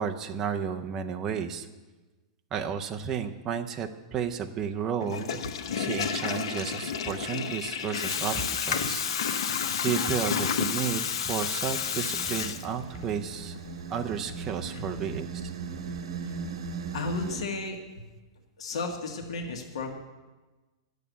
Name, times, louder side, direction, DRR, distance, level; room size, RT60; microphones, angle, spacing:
voice 1, 0.0-1.7 2.5-5.4 5.7-13.6 13.9-15.4, right 7 dB, 15° right, 4 dB, 0.5 m, -32 dB
Water tap faucet / Toilet flush, 5.0-13.0, left 7 dB, 65° left, 0.9 m, -30 dB
sound 1, 10.9-17.4, right 4 dB, 75° right, 1.1 m, -39 dB
voice 2, 16.9-18.1 18.6-19.9, left 3 dB, 85° left, 3 dB, 1.5 m, -34 dB
10.5 x 6.9 x 9.3 m, 1.2 s
supercardioid pair, 180°, 3 cm